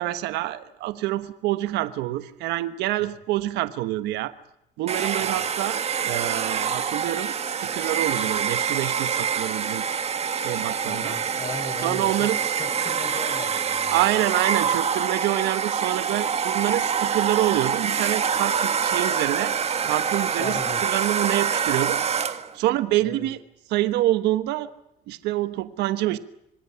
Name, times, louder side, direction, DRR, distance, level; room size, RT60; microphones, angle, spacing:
voice 1, 0.0-4.3 4.8-9.8 10.4-11.2 11.8-12.4 13.9-19.5 19.8-22.0 22.5-23.4 23.7-24.7 25.1-26.2, right 15 dB, 90° right, 12 dB, 1.2 m, -26 dB
Domestic sounds home sounds, 4.9-22.5, right 7 dB, 40° right, 1.7 m, -26 dB
voice 2, 10.9-14.2 20.4-20.8 23.0-23.3, left 3 dB, 35° left, 9 dB, 4.9 m, -37 dB
26.0 x 20.0 x 9.7 m, 0.82 s
cardioid pair, 110°, 17 cm